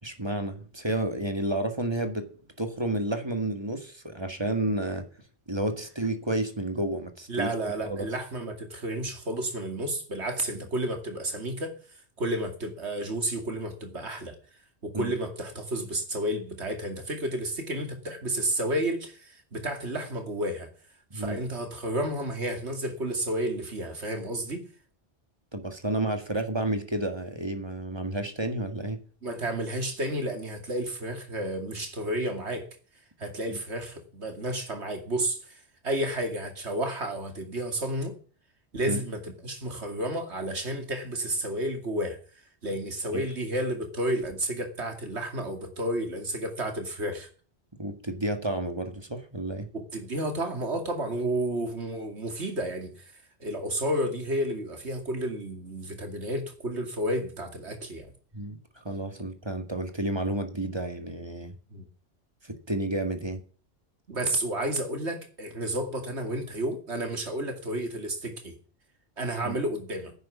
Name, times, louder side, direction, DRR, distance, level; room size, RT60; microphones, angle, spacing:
voice 1, 0.0-2.3 2.6-5.1 5.5-7.5 7.8-8.1 14.9-15.1 21.1-21.4 25.5-29.0 38.9-39.0 43.1-43.2 47.8-49.7 58.3-61.6 62.4-63.4 69.4-69.6, right 1 dB, 25° right, 1.9 m, -31 dB
voice 2, 7.3-11.7 12.2-14.4 14.8-20.7 21.1-24.7 29.2-32.6 33.2-38.1 38.7-42.2 42.6-47.3 49.7-53.1 53.4-58.1 61.7-61.9 64.1-68.6 69.2-70.1, right 1 dB, 75° right, 2.8 m, -31 dB
10.5 x 9.4 x 7.3 m
omnidirectional pair, 1.1 m